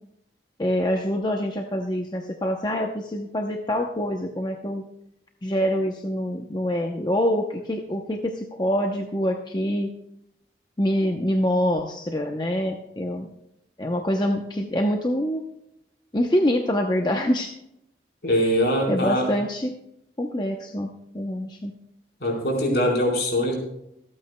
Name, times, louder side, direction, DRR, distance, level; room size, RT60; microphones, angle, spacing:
voice 1, 0.6-4.8 5.4-9.9 10.8-13.3 13.8-15.4 16.1-17.5 18.9-19.7 20.2-20.9 21.1-21.7, equal, 25° left, 2 dB, 0.7 m, -25 dB
voice 2, 18.2-19.3 22.2-23.5, equal, 65° left, -1 dB, 4.1 m, -22 dB
26.0 x 8.9 x 2.2 m, 0.80 s
head